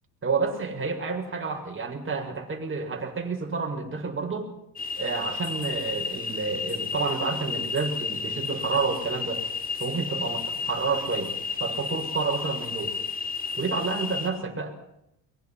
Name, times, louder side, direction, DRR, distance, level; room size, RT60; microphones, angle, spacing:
voice 1, 0.2-4.5 5.0-9.4 9.8-11.3 11.6-12.9 13.6-14.9, right 4 dB, 25° right, 2 dB, 7.1 m, -29 dB
sound 1, 4.8-14.3, left 5 dB, 20° left, 5.7 m, -32 dB
23.0 x 22.5 x 6.0 m, 0.81 s
hypercardioid pair, 80°, 47 cm